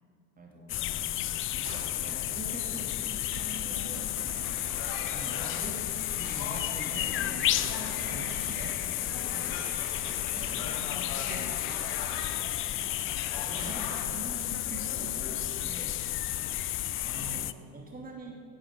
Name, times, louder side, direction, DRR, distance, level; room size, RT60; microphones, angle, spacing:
voice 1, 0.4-4.1 5.1-9.6 10.2-11.1 12.6-12.9 13.3-16.0 17.0-18.4, right 1 dB, 20° right, 0 dB, 2.7 m, -44 dB
sound 1, 0.7-17.5, left 13 dB, 30° left, 0.5 m, -32 dB
sound 2, 1.2-14.5, right 4 dB, 75° right, 1.5 m, -50 dB
voice 2, 1.5-1.9 3.5-3.7 8.2-8.5 10.0-12.5 16.0-17.4, right 2 dB, 50° right, 1 dB, 2.9 m, -50 dB
sound 3, 4.4-14.1, left 7 dB, 50° left, 1.7 m, -41 dB
15.5 x 10.5 x 6.7 m, 2.8 s
figure-of-eight pair, 65°, 46 cm